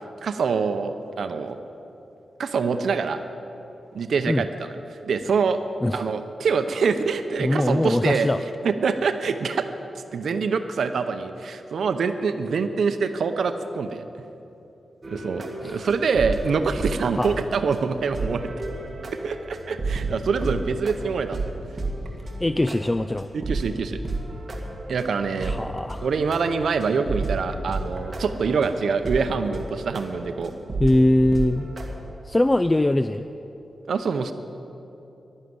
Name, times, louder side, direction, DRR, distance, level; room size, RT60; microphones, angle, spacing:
voice 1, 0.2-1.6 2.4-3.2 3.9-4.7 5.0-5.6 5.9-8.3 8.6-9.7 10.1-14.1 15.1-18.5 19.2-21.4 23.3-24.0 24.9-25.7 26.0-30.5 33.9-34.3, right 5 dB, 80° right, 8 dB, 0.7 m, -25 dB
voice 2, 7.4-8.4 15.6-15.9 17.2-17.4 22.4-23.3 25.4-26.1 30.8-31.7 32.2-33.3, left 1 dB, 15° left, 11 dB, 0.3 m, -22 dB
sound 1, 15.0-31.9, right 2 dB, 40° right, 2.0 m, -32 dB
12.0 x 11.5 x 9.5 m, 3.0 s
wide cardioid pair, 120°, 0 cm